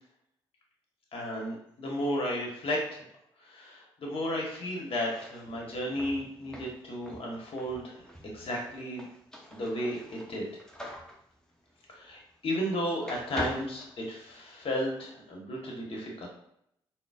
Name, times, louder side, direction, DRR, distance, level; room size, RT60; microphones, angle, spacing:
voice 1, 1.1-3.0 3.5-9.1 9.5-10.4 11.9-16.3, equal, 55° left, -1 dB, 1.0 m, -34 dB
sound 1, 4.9-12.7 13.0-14.7, left 1 dB, 5° left, 0.8 m, -44 dB
3.9 x 2.0 x 2.3 m, 0.74 s
hypercardioid pair, 50°, 11 cm